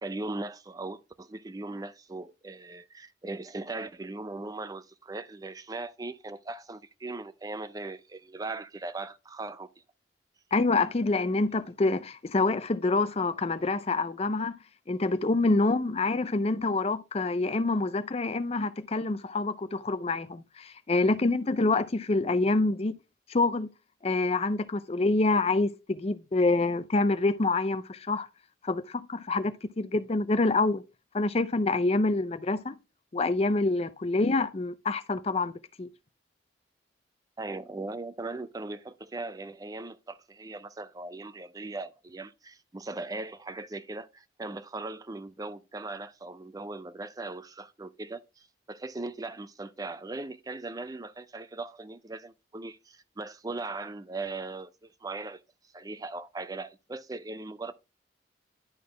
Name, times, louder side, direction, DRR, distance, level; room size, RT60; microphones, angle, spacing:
voice 1, 0.0-9.7 37.4-55.4 55.7-57.7, right 2 dB, 20° right, 0.4 m, -39 dB
voice 2, 10.5-14.5 14.9-23.0 23.3-23.7 24.0-28.3 28.6-30.8 31.1-32.8 33.1-35.5 35.8-35.9, left 3 dB, 35° left, 0.5 m, -26 dB
11.0 x 4.2 x 3.1 m
head